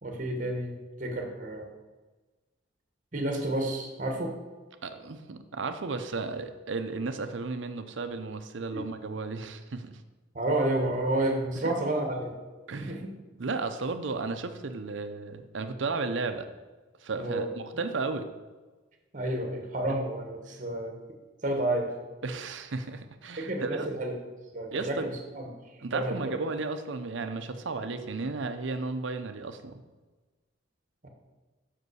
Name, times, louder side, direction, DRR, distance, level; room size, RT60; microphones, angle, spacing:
voice 1, 0.0-1.7 3.1-4.4 8.7-8.9 10.3-12.3 12.8-13.1 17.2-17.5 19.1-20.9 21.4-21.9 23.4-24.1 24.5-26.4 31.0-31.1, right 1 dB, 40° right, 3 dB, 1.2 m, -30 dB
voice 2, 4.8-10.0 11.6-11.7 12.7-13.0 13.4-16.5 17.0-17.5 17.8-18.3 22.2-23.9 24.7-25.1 25.8-29.8, right 3 dB, 80° right, 8 dB, 0.7 m, -34 dB
6.0 x 5.3 x 6.2 m, 1.2 s
head